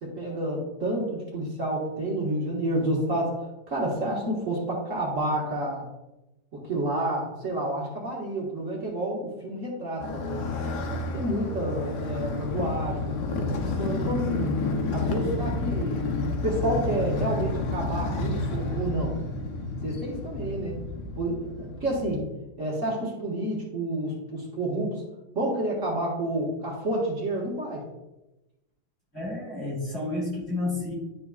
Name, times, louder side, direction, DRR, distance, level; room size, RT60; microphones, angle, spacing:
voice 1, 0.0-5.9 6.5-10.5 11.1-14.5 14.9-16.1 16.4-19.2 19.8-20.8 21.2-22.2 22.6-25.0 25.3-27.8, right 1 dB, 45° right, -4 dB, 1.8 m, -29 dB
Motorcycle, 10.0-22.2, left 2 dB, 70° left, 1.3 m, -30 dB
voice 2, 29.1-30.9, left 2 dB, 35° left, -6 dB, 2.7 m, -30 dB
11.5 x 3.8 x 2.3 m, 0.98 s
omnidirectional pair, 1.9 m